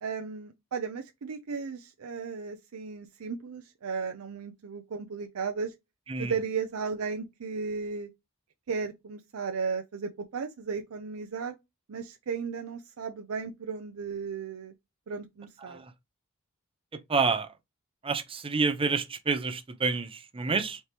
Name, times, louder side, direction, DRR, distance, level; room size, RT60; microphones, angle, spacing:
voice 1, 0.0-5.7 6.2-8.1 8.7-11.6 11.9-14.7 15.1-15.8, right 5 dB, 85° right, 0.5 m, -35 dB
voice 2, 16.9-17.5 18.0-20.8, right 4 dB, 25° right, 0.6 m, -28 dB
4.3 x 2.9 x 3.3 m
head